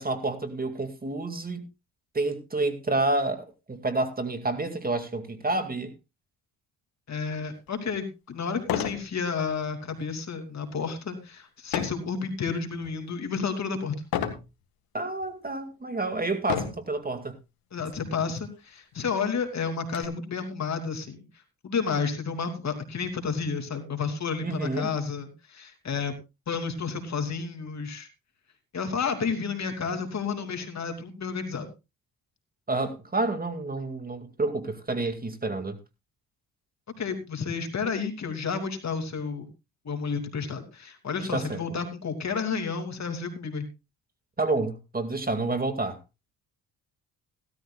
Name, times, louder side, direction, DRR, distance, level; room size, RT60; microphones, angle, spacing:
voice 1, 0.0-1.6 2.1-5.9 14.9-17.4 24.4-24.9 32.7-35.8 41.3-41.6 44.4-46.0, right 2 dB, 25° right, 2.2 m, -29 dB
voice 2, 7.1-14.0 17.7-21.2 21.6-26.2 26.5-28.1 28.7-31.7 37.0-39.5 39.8-43.7, left 5 dB, 50° left, 3.0 m, -31 dB
sound 1, 7.7-7.8 8.6-9.1 9.5-9.8 11.7-12.1 12.7-13.1 14.1-14.5 15.2-15.3 16.4-16.9 17.9-18.1 18.4-18.5 18.9-20.0, left 9 dB, 85° left, 1.9 m, -31 dB
16.5 x 13.0 x 2.3 m
cardioid pair, 75°, 35 cm